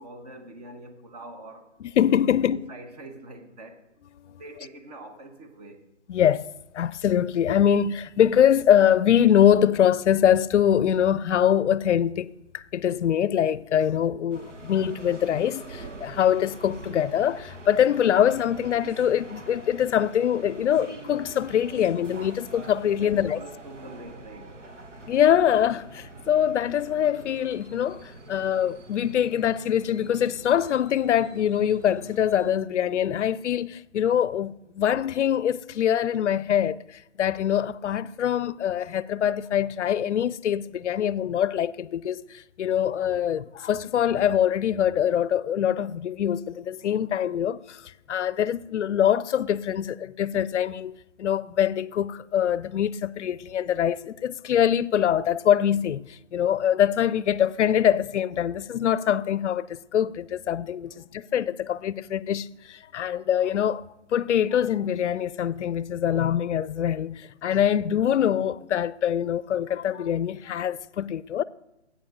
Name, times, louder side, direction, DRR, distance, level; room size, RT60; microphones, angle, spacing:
voice 1, 0.0-1.7 2.2-3.9 4.3-5.9 22.9-24.6 60.9-61.1, right 2 dB, 35° right, 1.1 m, -44 dB
voice 2, 2.0-2.7 6.1-23.4 25.1-63.8 64.1-71.4, left 9 dB, 75° left, 0.5 m, -24 dB
sound 1, 14.3-32.6, right 2 dB, 85° right, 1.5 m, -44 dB
13.0 x 8.5 x 3.7 m
hypercardioid pair, 160°, 36 cm